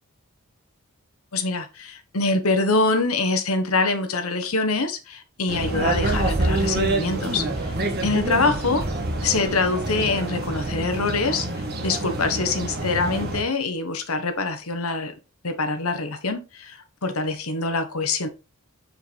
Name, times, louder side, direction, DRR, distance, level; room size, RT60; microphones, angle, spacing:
voice 1, 1.3-7.7 8.0-8.8 9.2-11.5 11.8-15.2 15.4-18.3, left 3 dB, 75° left, 7 dB, 1.3 m, -24 dB
sound 1, 5.5-13.4, right 2 dB, 45° right, 1.6 m, -26 dB
8.4 x 4.7 x 3.5 m, 0.30 s
head